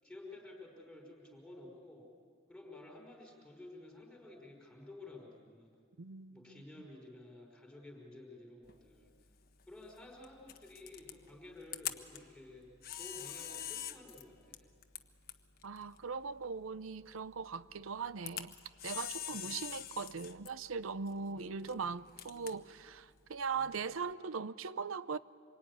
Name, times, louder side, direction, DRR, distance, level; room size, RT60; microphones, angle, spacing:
voice 1, 0.0-2.1 2.5-5.7 6.3-9.1 9.7-12.7 13.0-14.7 19.3-19.6 21.3-21.9 22.3-22.6 23.5-23.8, left 2 dB, 5° left, 4.9 m, -53 dB
voice 2, 6.0-6.5 15.6-18.5 18.8-25.2, right 5 dB, 90° right, 0.6 m, -40 dB
Camera, 8.6-24.1, left 11 dB, 50° left, 1.1 m, -47 dB
26.5 x 23.0 x 9.8 m
head